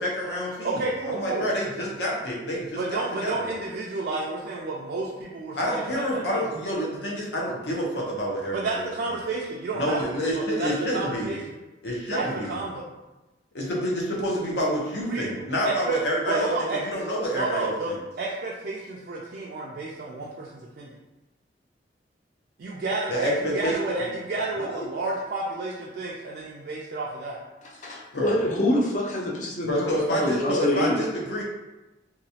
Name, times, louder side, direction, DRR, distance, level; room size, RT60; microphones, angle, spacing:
voice 1, 0.0-3.5 5.6-8.9 9.7-11.3 11.8-12.6 13.5-18.0 23.1-24.1 24.5-24.9 28.1-28.4 29.6-31.4, equal, 75° left, -4 dB, 0.8 m, -28 dB
voice 2, 0.6-1.5 2.8-6.5 8.5-11.4 12.1-12.8 15.1-16.0 16.3-16.8 17.3-20.9 22.6-27.4, right 3 dB, 55° right, -4 dB, 0.3 m, -31 dB
voice 3, 27.6-29.9 30.2-31.0, left 1 dB, 45° left, -3 dB, 0.6 m, -26 dB
2.9 x 2.3 x 2.7 m, 1.1 s
head